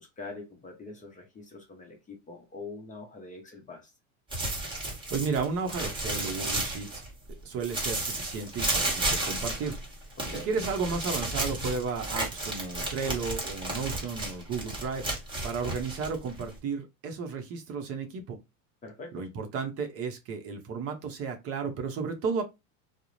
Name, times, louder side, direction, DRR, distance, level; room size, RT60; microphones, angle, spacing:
voice 1, 0.0-3.9 10.2-10.6 18.8-19.3, left 3 dB, 20° left, 0.6 m, -44 dB
sound 1, 4.3-7.3 7.6-16.6, right 2 dB, 10° right, 1.1 m, -33 dB
voice 2, 4.7-7.0 7.4-9.8 10.3-15.1 15.4-18.4 19.1-22.4, right 5 dB, 35° right, 0.7 m, -33 dB
2.4 x 2.0 x 3.0 m
supercardioid pair, 115°, 41 cm